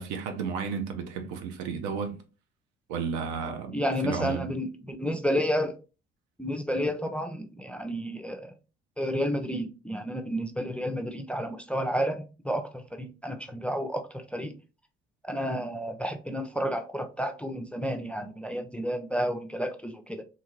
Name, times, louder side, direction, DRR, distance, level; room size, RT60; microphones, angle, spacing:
voice 1, 0.0-2.2 2.9-3.8 4.0-4.5, right 6 dB, 70° right, 0.7 m, -32 dB
voice 2, 3.7-5.7 6.4-8.5 9.0-14.5 15.2-20.2, equal, 5° left, 0.5 m, -31 dB
2.8 x 2.8 x 2.4 m
hypercardioid pair, 50°, 31 cm